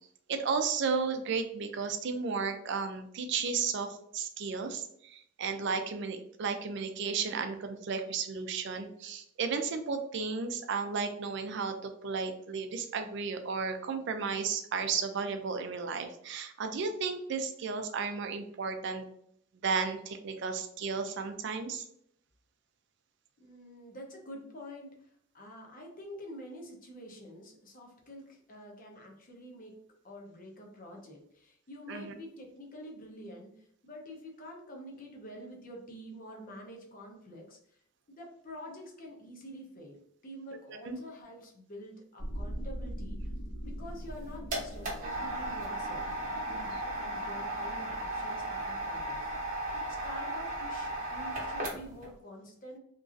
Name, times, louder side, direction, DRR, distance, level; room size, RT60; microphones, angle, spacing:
voice 1, 0.3-19.1 19.6-21.9 31.9-32.1 40.9-41.0, right 5 dB, 60° right, 7 dB, 0.4 m, -33 dB
voice 2, 23.4-37.6 38.1-43.3 43.6-52.8, equal, 45° left, 0 dB, 0.7 m, -47 dB
sound 1, 42.2-49.4, equal, 75° left, 1.3 m, -43 dB
sound 2, 44.0-52.1, right 1 dB, 40° right, 0.9 m, -36 dB
3.0 x 2.5 x 2.4 m, 0.69 s
head